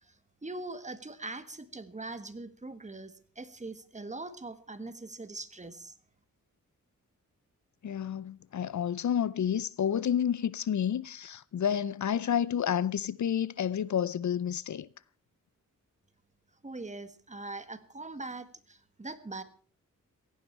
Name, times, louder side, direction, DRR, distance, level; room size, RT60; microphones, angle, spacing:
voice 1, 0.4-5.9 16.6-19.4, right 2 dB, 20° right, 1.5 m, -42 dB
voice 2, 7.8-14.9, left 9 dB, 65° left, 0.6 m, -30 dB
17.0 x 15.5 x 4.5 m
wide cardioid pair, 115°, 32 cm